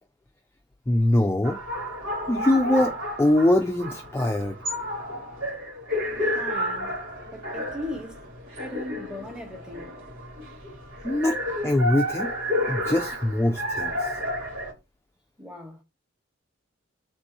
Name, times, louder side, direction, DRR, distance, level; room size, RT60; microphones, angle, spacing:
voice 1, 0.9-1.6 2.3-4.6 11.0-12.3 12.7-14.1, left 1 dB, 10° left, 0.3 m, -23 dB
sound 1, 1.4-14.7, left 1 dB, 90° right, 2.5 m, -31 dB
voice 2, 4.8-5.6 6.3-7.0 7.2-8.2 8.6-10.0 15.4-15.8, left 1 dB, 5° right, 1.0 m, -39 dB
3.5 x 2.7 x 4.6 m
head